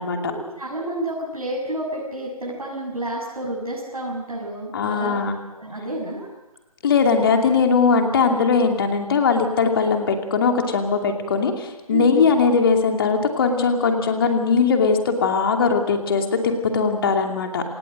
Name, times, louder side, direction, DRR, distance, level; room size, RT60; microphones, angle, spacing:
voice 1, 0.3-5.2 5.5-6.3 8.2-8.4 11.9-12.3, right 1 dB, 75° right, -3 dB, 7.0 m, -30 dB
voice 2, 4.7-5.4 6.8-17.6, left 5 dB, 40° left, 4 dB, 2.7 m, -20 dB
26.5 x 18.5 x 6.6 m, 1.0 s
figure-of-eight pair, 140°, 19 cm